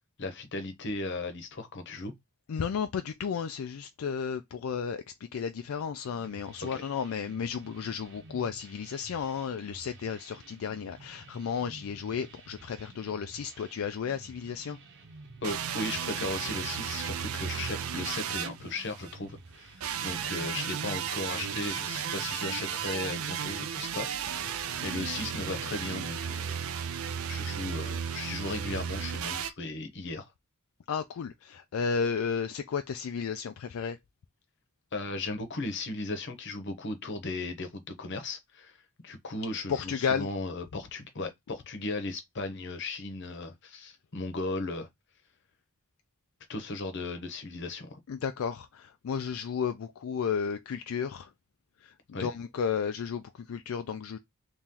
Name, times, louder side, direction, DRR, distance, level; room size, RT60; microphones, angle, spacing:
voice 1, 0.2-2.1 6.6-6.8 15.4-24.1 24.4-24.5 24.8-26.4 27.3-30.2 34.9-38.8 39.0-44.9 46.5-48.0 52.1-52.3, left 2 dB, 55° left, 0.9 m, -36 dB
voice 2, 2.5-5.0 5.3-14.8 30.9-34.0 39.7-40.3 48.1-51.3 51.8-54.2, left 6 dB, 75° left, 0.4 m, -33 dB
sound 1, 6.0-26.0, right 3 dB, 60° right, 0.9 m, -52 dB
sound 2, 15.4-19.2 19.8-29.5, right 8 dB, 80° right, 0.5 m, -34 dB
3.0 x 2.8 x 3.7 m
head